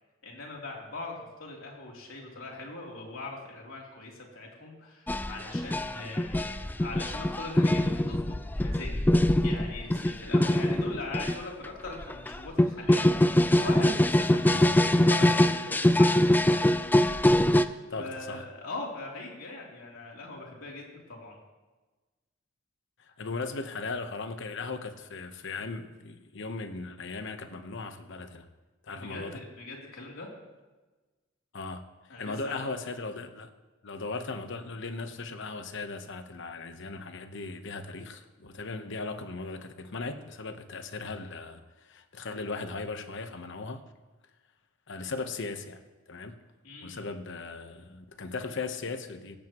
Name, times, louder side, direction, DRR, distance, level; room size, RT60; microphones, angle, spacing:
voice 1, 0.2-9.1 9.4-16.6 17.2-21.4 28.9-30.3 32.1-32.7 46.6-47.0, left 2 dB, 90° left, 3.4 m, -41 dB
sound 1, 5.1-11.4 11.6-17.6, left 1 dB, 10° left, 0.4 m, -23 dB
voice 2, 17.9-18.4 23.0-28.5 28.8-29.4 31.5-33.5 33.8-43.8 44.9-45.8 46.1-46.4 46.8-49.4, left 3 dB, 65° left, 1.0 m, -38 dB
17.0 x 15.5 x 3.1 m
head